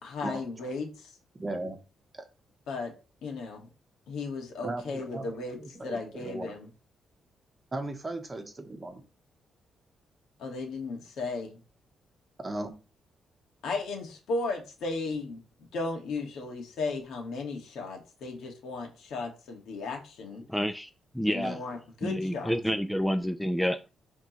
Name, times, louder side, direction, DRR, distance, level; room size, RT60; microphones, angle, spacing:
voice 1, 0.0-1.1 2.7-2.9 3.2-3.7 4.1-5.6 5.8-6.7 10.4-11.6 13.6-15.4 15.7-20.4 21.3-22.5, left 3 dB, 80° left, 1.9 m, -35 dB
voice 2, 1.4-1.8 2.1-2.2 4.6-6.5 7.7-9.0 12.4-12.7 21.4-21.6, right 2 dB, 20° right, 1.0 m, -37 dB
voice 3, 20.5-20.9 21.1-21.6 22.0-23.9, equal, ahead, 0.4 m, -29 dB
11.0 x 3.7 x 3.1 m
cardioid pair, 160°, 0 cm